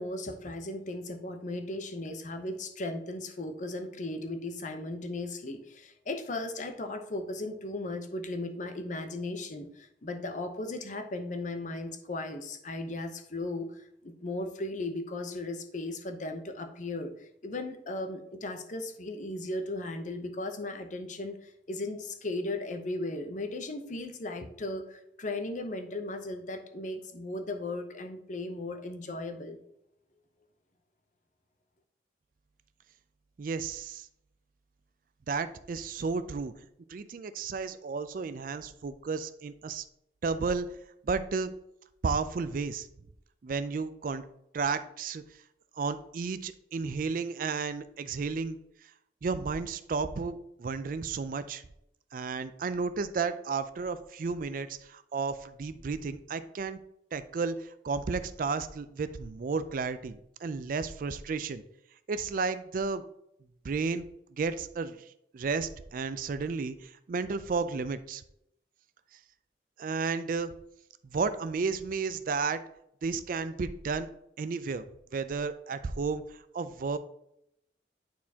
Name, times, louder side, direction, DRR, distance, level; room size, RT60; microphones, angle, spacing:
voice 1, 0.0-29.6, left 2 dB, 45° left, 6 dB, 0.7 m, -36 dB
voice 2, 33.4-34.1 35.3-36.5 36.9-39.8 40.2-40.7 41.0-41.5 42.0-42.9 43.4-44.2 44.5-45.2 45.8-48.6 49.2-51.6 52.1-56.8 57.1-61.6 62.1-63.0 63.6-64.0 64.3-65.0 65.3-68.2 69.8-70.5 71.0-72.6 73.0-74.1 74.4-74.9 75.1-77.0, right 4 dB, 50° right, 13 dB, 0.4 m, -32 dB
9.3 x 4.3 x 2.8 m, 0.77 s
head